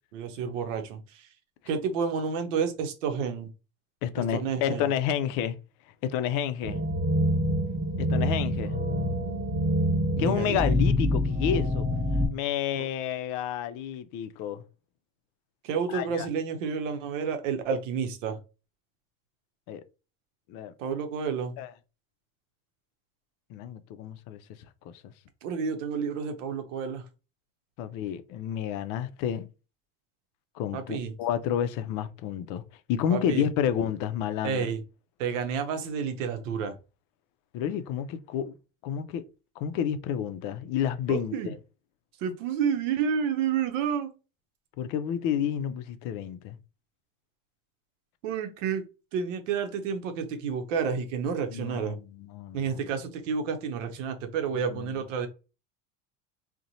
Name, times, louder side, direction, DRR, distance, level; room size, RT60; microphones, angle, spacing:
voice 1, 0.1-1.0 1.7-3.5 4.3-4.9 10.2-10.6 15.6-18.4 20.8-21.6 25.4-27.0 30.7-31.1 33.1-33.5 34.4-34.8 35.2-36.8 41.1-41.5 42.2-44.1 48.2-48.8 49.1-52.0 52.5-55.3, right 6 dB, 85° right, 0.6 m, -30 dB
voice 2, 4.0-5.6 6.0-6.8 8.0-8.8 10.2-11.9 12.3-14.6 15.9-16.3 19.7-19.8 20.5-20.7 21.6-21.7 23.5-24.4 27.8-29.5 30.6-32.6 32.9-34.7 37.5-38.5 38.8-39.2 39.6-41.4 44.8-46.6 51.5-52.9 54.7-55.0, left 9 dB, 60° left, 0.5 m, -30 dB
sound 1, 6.6-12.3, equal, 35° right, 1.3 m, -26 dB
2.8 x 2.1 x 2.6 m
hypercardioid pair, 85°, 37 cm